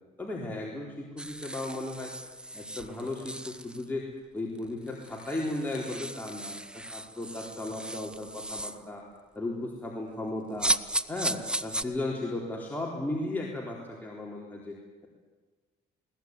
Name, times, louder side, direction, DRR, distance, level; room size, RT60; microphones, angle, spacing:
voice 1, 0.2-2.1 2.5-4.0 4.3-9.0 9.3-10.7 11.1-14.8, left 2 dB, 10° left, -2 dB, 4.0 m, -35 dB
sound 1, 1.2-3.9 4.5-4.6 4.9-8.8 10.6-11.8, right 1 dB, 5° right, 0.8 m, -35 dB
21.0 x 19.5 x 9.7 m, 1.4 s
cardioid pair, 110°, 17 cm